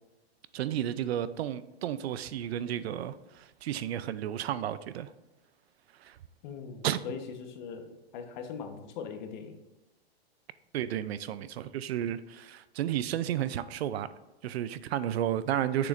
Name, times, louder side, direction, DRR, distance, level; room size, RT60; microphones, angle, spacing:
voice 1, 0.5-5.1 6.0-6.2 6.8-7.0 10.7-14.1 14.4-15.9, right 11 dB, 75° right, 0.5 m, -32 dB
voice 2, 6.4-9.6, left 6 dB, 45° left, 1.1 m, -41 dB
8.4 x 6.8 x 2.5 m
hypercardioid pair, 155°, 32 cm